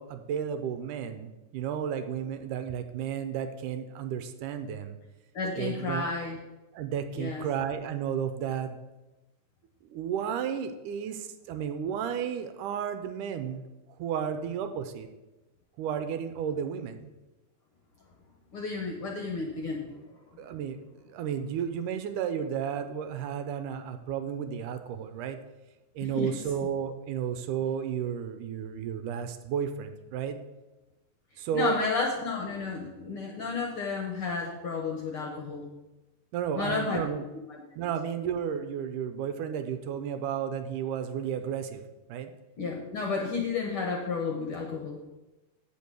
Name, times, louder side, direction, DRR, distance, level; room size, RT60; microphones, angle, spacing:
voice 1, 0.0-5.0 5.5-6.1 6.7-8.8 9.9-13.6 14.0-15.1 15.8-17.1 20.4-20.8 21.1-25.4 26.0-30.4 31.4-31.8 36.3-37.2 37.8-41.8 42.1-42.3, right 8 dB, 80° right, 8 dB, 2.1 m, -33 dB
voice 2, 5.3-6.4 7.2-7.4 18.5-20.2 26.0-26.3 31.5-35.7 36.5-37.0 37.5-37.6 42.6-45.0, left 4 dB, 60° left, 1 dB, 1.4 m, -32 dB
8.5 x 7.3 x 6.1 m, 1.1 s
omnidirectional pair, 3.8 m